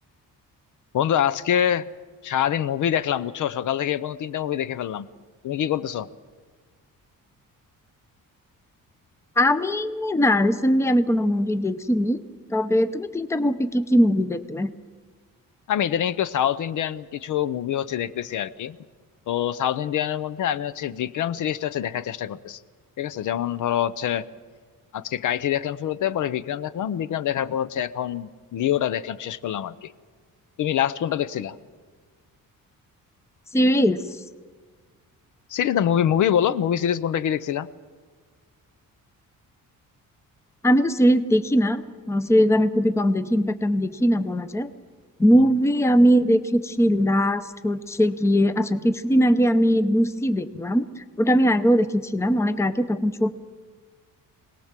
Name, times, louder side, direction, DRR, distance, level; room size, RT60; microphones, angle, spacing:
voice 1, 0.9-1.9 2.2-5.1 5.4-6.1 15.7-18.8 19.3-22.6 23.0-24.3 24.9-29.9 30.6-31.5 35.5-37.7 45.3-45.4, left 10 dB, 60° left, 15 dB, 0.7 m, -25 dB
voice 2, 9.4-12.2 12.5-14.7 33.5-34.0 40.6-44.7 45.2-53.3, equal, 10° left, 11 dB, 0.7 m, -20 dB
25.5 x 18.5 x 7.4 m, 1.5 s
cardioid pair, 160°, 34 cm